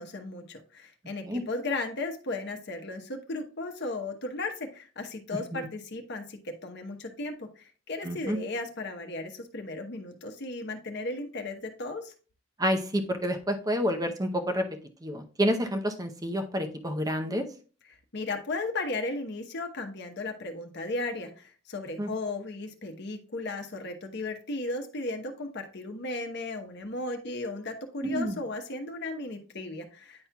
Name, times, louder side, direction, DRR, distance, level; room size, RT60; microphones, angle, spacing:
voice 1, 0.0-12.1 17.9-30.3, left 2 dB, 55° left, 4 dB, 1.0 m, -35 dB
voice 2, 8.0-8.4 12.6-14.6 15.0-17.4 22.0-22.1 28.0-28.4, equal, 20° right, 4 dB, 0.7 m, -29 dB
9.6 x 4.3 x 2.3 m, 0.38 s
head